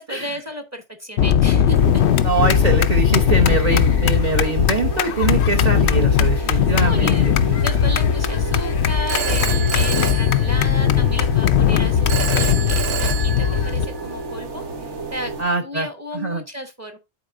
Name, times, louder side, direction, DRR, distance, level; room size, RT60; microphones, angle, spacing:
voice 1, 0.0-2.0 6.4-14.6 15.1-15.3 15.6-17.0, equal, 15° right, 1.1 m, -33 dB
sound 1, 1.2-13.8, left 9 dB, 75° left, 0.8 m, -18 dB
sound 2, 1.7-15.4, right 4 dB, 85° right, 1.5 m, -32 dB
voice 2, 2.2-7.1 15.4-15.9 16.1-16.4, right 3 dB, 35° right, 1.0 m, -23 dB
Telephone, 9.1-11.0 12.1-14.0, right 7 dB, 65° right, 0.9 m, -27 dB
12.0 x 4.3 x 2.5 m
omnidirectional pair, 1.2 m